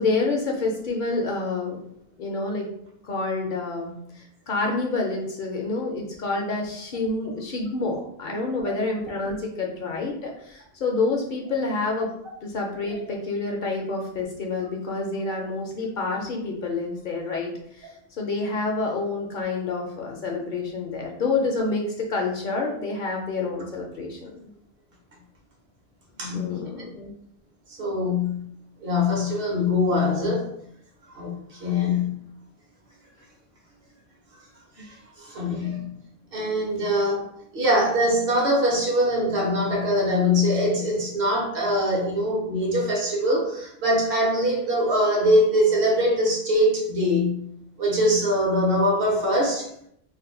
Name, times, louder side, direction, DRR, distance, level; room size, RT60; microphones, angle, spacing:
voice 1, 0.0-1.8 2.2-2.7 3.0-12.1 12.4-24.5 26.3-27.2, left 3 dB, 60° left, 0 dB, 0.6 m, -28 dB
voice 2, 26.2-26.6 27.8-28.4 28.8-30.5 31.1-32.1 34.8-35.9 36.3-37.3 37.5-47.4 47.8-49.7, left 1 dB, 65° right, -1 dB, 0.9 m, -23 dB
2.6 x 2.1 x 3.6 m, 0.72 s
omnidirectional pair, 1.1 m